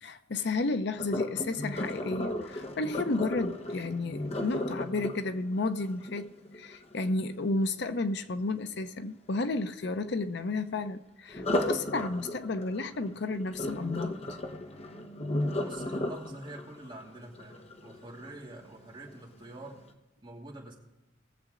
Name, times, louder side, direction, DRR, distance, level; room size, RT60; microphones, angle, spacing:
voice 1, 0.0-14.1, left 3 dB, 65° left, 0.7 m, -32 dB
Sink (filling or washing), 1.0-6.9 11.3-18.4 18.9-19.2 19.7-19.8, left 1 dB, 35° left, 1.1 m, -35 dB
voice 2, 15.6-19.8 20.2-20.8, right 1 dB, 25° right, 2.8 m, -46 dB
20.5 x 7.5 x 3.8 m
head